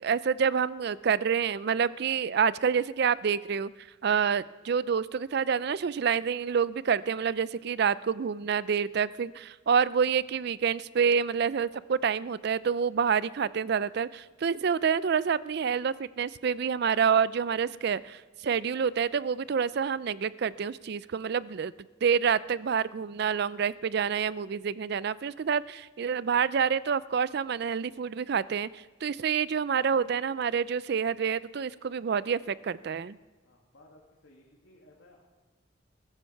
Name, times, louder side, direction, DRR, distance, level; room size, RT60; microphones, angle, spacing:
voice 1, 0.0-21.7 22.0-33.2, right 6 dB, 55° right, 18 dB, 0.4 m, -28 dB
voice 2, 33.4-35.2, left 1 dB, 90° left, -2 dB, 2.3 m, -58 dB
22.0 x 14.0 x 4.6 m, 1.3 s
head